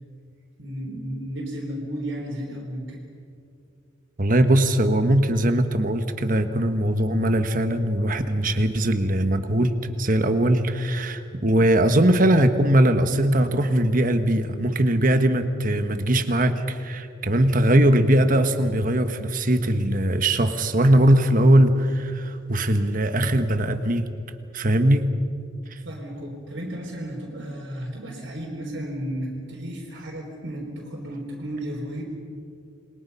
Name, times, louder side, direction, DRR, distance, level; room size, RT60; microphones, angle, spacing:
voice 1, 0.6-3.0 25.8-32.0, equal, 65° right, -4 dB, 3.9 m, -33 dB
voice 2, 4.2-24.1 24.5-25.1 25.7-25.8, right 1 dB, 40° right, 8 dB, 1.3 m, -20 dB
28.5 x 22.5 x 5.6 m, 2.5 s
head